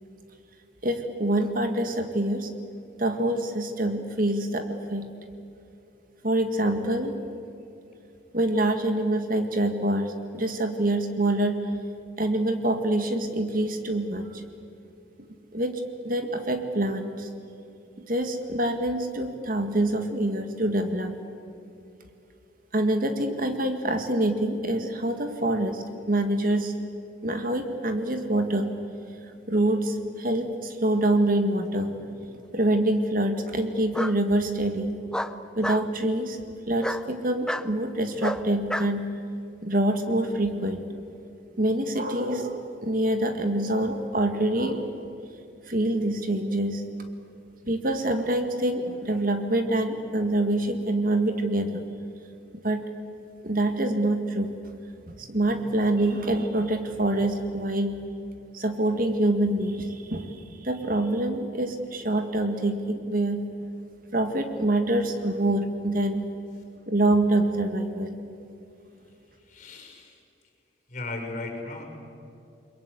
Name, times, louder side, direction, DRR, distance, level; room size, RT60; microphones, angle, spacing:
voice 1, 0.8-2.5 3.0-5.1 6.2-7.1 8.3-11.6 12.2-14.4 15.5-17.3 18.0-21.2 22.7-26.7 27.2-28.7 29.5-31.9 32.5-35.0 35.6-36.4 36.7-39.1 39.6-40.9 41.6-44.9 45.7-46.8 47.7-51.8 52.6-52.8 53.4-54.5 55.1-57.9 58.5-63.4 64.1-66.3 66.9-68.2, right 1 dB, 45° right, 6 dB, 2.0 m, -26 dB
Bark, 31.8-32.4 33.9-34.2 35.1-35.9 36.8-37.0 37.5-37.7 38.2-38.9, equal, 5° left, 0.7 m, -30 dB
voice 2, 69.5-70.2 70.9-71.9, left 2 dB, 40° left, 3 dB, 6.2 m, -36 dB
30.0 x 22.0 x 8.3 m, 2.7 s
head